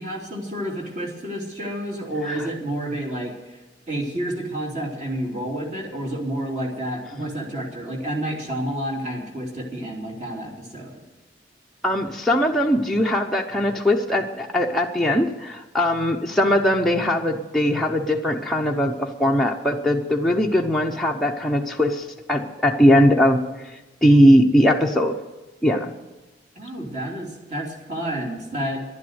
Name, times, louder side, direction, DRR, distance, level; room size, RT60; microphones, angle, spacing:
voice 1, 0.0-3.6 3.9-11.0 26.6-28.8, right 1 dB, 35° right, 0 dB, 3.0 m, -30 dB
voice 2, 11.8-25.1 25.6-25.9, equal, ahead, -1 dB, 0.8 m, -20 dB
11.0 x 10.5 x 8.0 m, 1.1 s
head